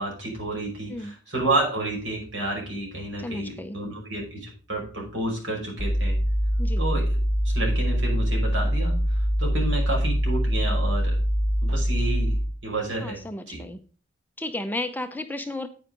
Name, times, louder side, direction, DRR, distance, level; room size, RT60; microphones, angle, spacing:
voice 1, 0.0-6.2 6.8-7.0 7.4-9.0 9.4-11.2 11.6-12.4 12.6-13.2 13.5-13.6, right 2 dB, 70° right, 0 dB, 5.6 m, -30 dB
voice 2, 3.2-3.8 6.6-6.8 13.0-13.8 14.4-15.7, left 2 dB, 10° left, 8 dB, 0.6 m, -33 dB
sound 1, 5.8-12.6, equal, 25° left, 3.4 m, -24 dB
10.0 x 9.0 x 3.8 m, 0.38 s
head